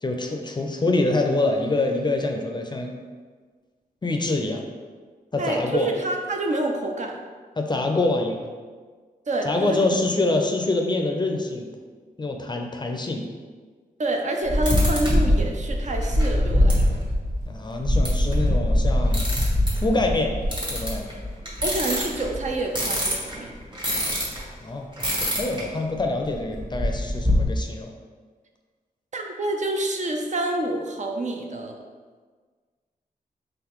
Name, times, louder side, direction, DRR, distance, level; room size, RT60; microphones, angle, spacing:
voice 1, 0.0-2.9 4.0-4.7 5.3-5.9 7.6-8.5 9.4-11.7 12.2-13.3 17.5-19.3 19.7-20.3 20.7-21.2 24.6-27.9, left 2 dB, 30° left, 3 dB, 0.4 m, -25 dB
voice 2, 5.4-7.2 9.3-9.8 14.0-17.0 21.6-23.5 29.1-31.8, right 2 dB, 50° right, 2 dB, 0.5 m, -27 dB
sound 1, 14.4-24.4 25.0-25.6 25.9-26.0 26.3-27.4, equal, 30° right, 1.2 m, -23 dB
3.9 x 3.2 x 3.0 m, 1.5 s
wide cardioid pair, 80°, 15 cm